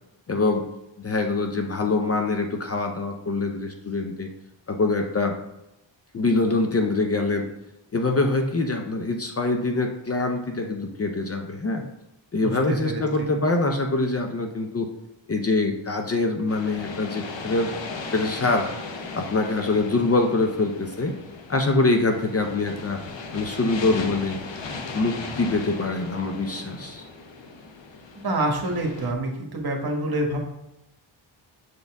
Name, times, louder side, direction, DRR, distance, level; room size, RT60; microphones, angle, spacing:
voice 1, 0.3-0.6 1.0-4.3 4.7-5.3 6.1-7.5 7.9-11.8 12.3-14.9 15.3-17.7 18.1-18.7 19.1-21.1 21.5-23.0 23.3-24.4 24.9-27.0, left 3 dB, 30° left, 4 dB, 0.6 m, -24 dB
voice 2, 12.4-13.3 28.2-30.4, right 1 dB, 50° right, 1 dB, 1.3 m, -27 dB
sound 1, 16.5-29.1, left 4 dB, 65° left, 0.9 m, -37 dB
6.6 x 4.1 x 3.5 m, 0.87 s
wide cardioid pair, 100°, 48 cm